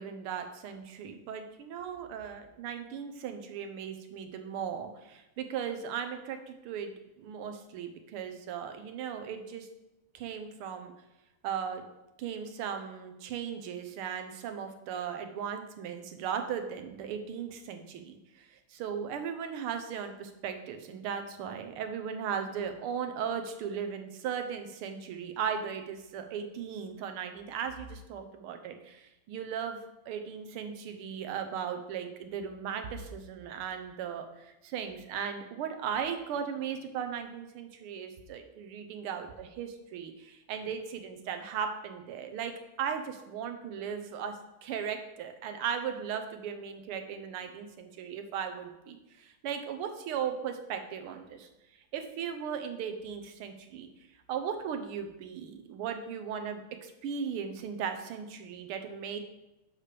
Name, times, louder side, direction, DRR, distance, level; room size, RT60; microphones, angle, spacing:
voice 1, 0.0-9.7 10.1-10.9 11.4-11.9 12.2-29.8 30.1-51.5 51.9-53.9 54.3-59.2, right 7 dB, 85° right, 6 dB, 1.7 m, -37 dB
7.3 x 6.5 x 3.3 m, 0.92 s
omnidirectional pair, 2.4 m